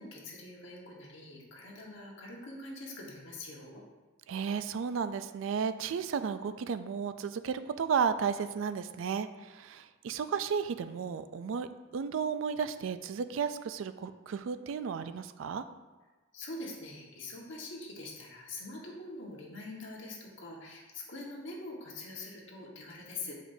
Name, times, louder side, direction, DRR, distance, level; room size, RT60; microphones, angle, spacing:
voice 1, 0.0-3.8 16.3-23.3, left 2 dB, 60° left, -2 dB, 1.3 m, -44 dB
voice 2, 4.3-15.7, right 6 dB, 65° right, 12 dB, 0.3 m, -33 dB
8.0 x 5.0 x 2.6 m, 1.2 s
head